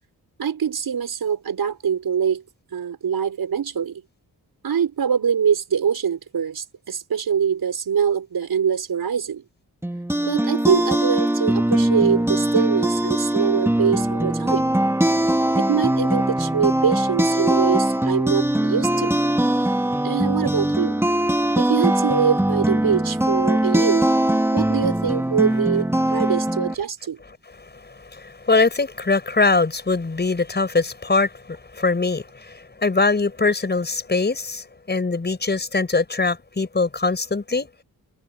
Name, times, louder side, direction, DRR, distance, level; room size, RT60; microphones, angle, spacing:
voice 1, 0.4-2.4 2.7-4.0 4.6-9.4 10.2-14.7 15.6-19.2 20.0-21.0 21.6-24.1 24.5-27.2, right 7 dB, 75° right, 6.0 m, -23 dB
sound 1, 9.8-26.7, right 1 dB, 5° right, 2.1 m, -21 dB
voice 2, 27.6-37.7, left 3 dB, 25° left, 5.9 m, -22 dB
wide cardioid pair, 165°, 37 cm